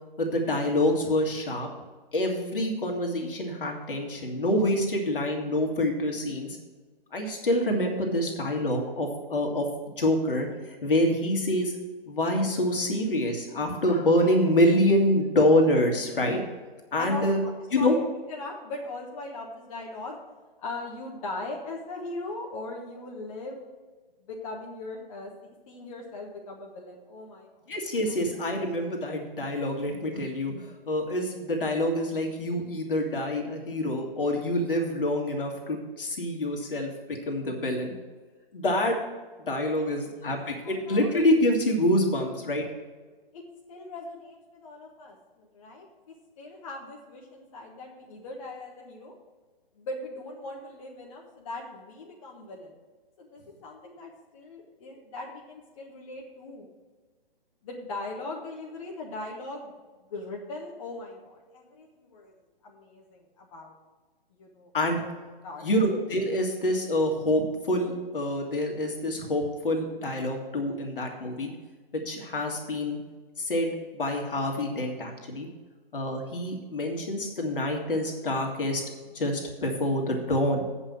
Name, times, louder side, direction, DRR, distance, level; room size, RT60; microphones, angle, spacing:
voice 1, 0.2-1.7 2.1-6.6 7.1-9.7 10.0-11.7 12.1-16.4 16.9-17.4 17.7-18.0 27.7-30.6 30.9-37.9 38.5-39.0 39.5-42.6 64.7-65.0 65.6-71.5 72.1-73.0 73.4-75.5 75.9-78.8 79.1-80.6, left 1 dB, 65° left, 2 dB, 2.0 m, -26 dB
voice 2, 17.0-18.0 18.3-20.2 20.6-23.7 24.2-25.3 25.7-27.5 28.1-28.2 39.7-40.0 40.3-41.1 42.2-42.3 43.3-43.4 43.7-45.9 46.4-49.1 49.8-52.8 53.2-56.7 57.6-59.7 60.1-62.3 62.6-63.7 64.3-64.7 65.0-65.2 65.4-65.8, left 2 dB, 35° left, -1 dB, 1.3 m, -40 dB
8.0 x 5.7 x 7.6 m, 1.3 s
figure-of-eight pair, 130°, 29 cm